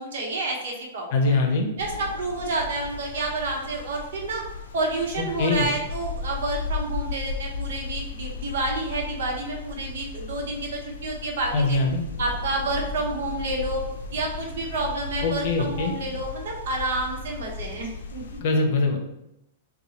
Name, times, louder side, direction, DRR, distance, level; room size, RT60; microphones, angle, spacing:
voice 1, 0.0-1.4 1.8-4.4 4.7-11.8 12.2-13.8 14.1-18.2, right 2 dB, 70° right, 0 dB, 1.0 m, -29 dB
voice 2, 1.1-1.7 5.4-5.7 11.5-12.0 15.2-15.9 18.4-19.0, left 3 dB, 55° left, 3 dB, 0.7 m, -22 dB
sound 1, 1.8-18.4, left 4 dB, 90° left, 0.4 m, -35 dB
2.9 x 2.3 x 4.2 m, 0.84 s
hypercardioid pair, 145°, 0 cm